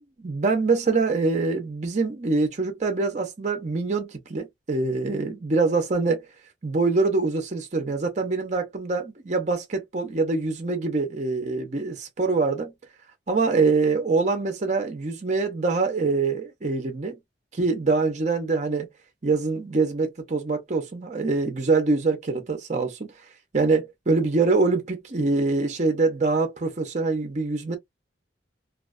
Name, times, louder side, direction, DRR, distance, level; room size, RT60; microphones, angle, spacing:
voice 1, 0.2-6.3 6.6-12.7 13.3-17.2 17.5-18.9 19.2-23.1 23.5-27.8, right 3 dB, 40° right, 0.5 m, -24 dB
2.3 x 2.2 x 2.3 m
head